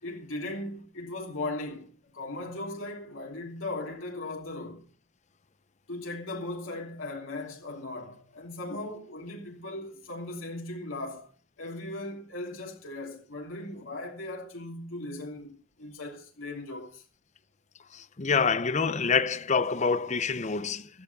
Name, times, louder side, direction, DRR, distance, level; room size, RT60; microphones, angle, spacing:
voice 1, 0.0-4.9 5.9-11.3 11.6-17.0, left 2 dB, 75° left, 3.0 m, -38 dB
voice 2, 17.9-20.9, left 5 dB, 35° left, 0.7 m, -26 dB
15.5 x 13.0 x 4.1 m
head